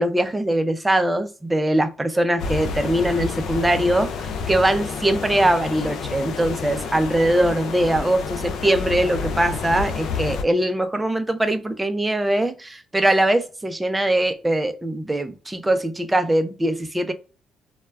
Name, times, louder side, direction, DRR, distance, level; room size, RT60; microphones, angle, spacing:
voice 1, 0.0-17.1, right 1 dB, 15° right, 0.4 m, -22 dB
sound 1, 2.4-10.4, left 5 dB, 75° left, 0.4 m, -29 dB
2.2 x 2.2 x 3.3 m
cardioid pair, 90°, 0 cm